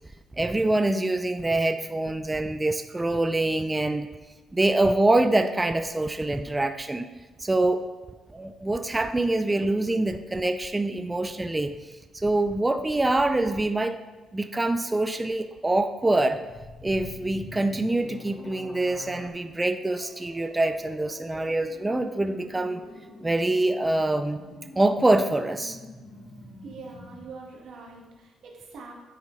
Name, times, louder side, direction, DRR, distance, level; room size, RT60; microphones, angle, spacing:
voice 1, 0.4-4.1 4.5-7.1 7.4-7.8 8.3-11.7 12.1-14.0 14.3-16.4 16.8-22.8 23.2-24.4 24.8-25.8, right 2 dB, 15° right, 8 dB, 0.4 m, -25 dB
sound 1, 16.0-19.3, left 3 dB, 40° left, 0.9 m, -43 dB
sound 2, 19.9-27.3, left 1 dB, 70° left, 2.2 m, -46 dB
voice 2, 26.6-28.9, right 4 dB, 70° right, -2 dB, 1.5 m, -43 dB
8.4 x 5.2 x 3.1 m, 1.2 s
cardioid pair, 90°, 0 cm